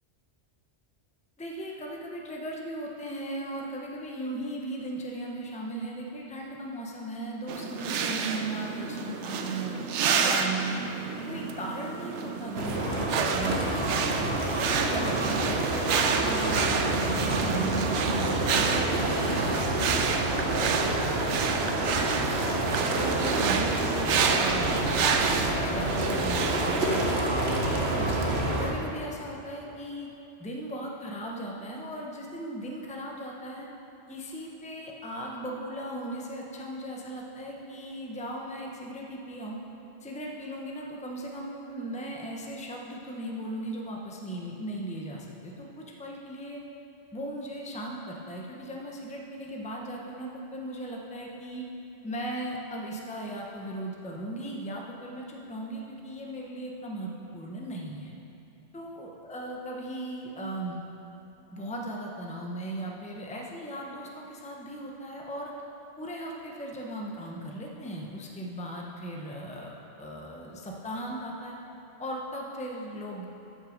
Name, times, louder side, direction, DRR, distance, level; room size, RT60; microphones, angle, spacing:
voice 1, 1.4-9.8 10.2-10.9 11.2-14.2 14.6-19.9 20.3-24.8 25.4-28.2 28.6-30.1 30.4-33.7 34.1-39.6 40.0-46.6 47.1-51.6 52.0-58.1 58.7-60.8 61.5-65.5 66.0-71.6 72.0-73.3, right 1 dB, 5° left, -1 dB, 0.8 m, -37 dB
sound 1, 7.5-26.8, right 6 dB, 90° right, 0.9 m, -30 dB
sound 2, 12.5-28.7, right 2 dB, 65° right, 1.4 m, -28 dB
13.0 x 6.4 x 5.1 m, 3.0 s
omnidirectional pair, 1.2 m